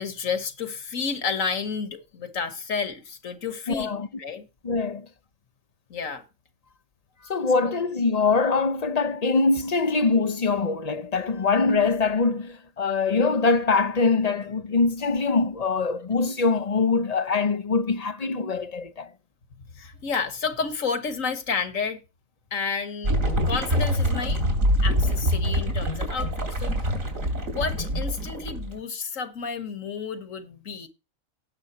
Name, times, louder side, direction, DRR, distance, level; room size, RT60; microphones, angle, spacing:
voice 1, 0.0-4.4 5.9-6.2 7.6-7.7 19.7-22.0 22.5-23.2 23.5-24.4 24.8-26.7 27.5-30.9, left 5 dB, 75° left, 1.9 m, -31 dB
voice 2, 3.7-4.1 4.6-5.1 7.3-19.1, left 4 dB, 35° left, 0.9 m, -23 dB
sound 1, 23.0-28.8, equal, 80° right, 3.3 m, -25 dB
18.0 x 6.8 x 2.9 m
omnidirectional pair, 1.4 m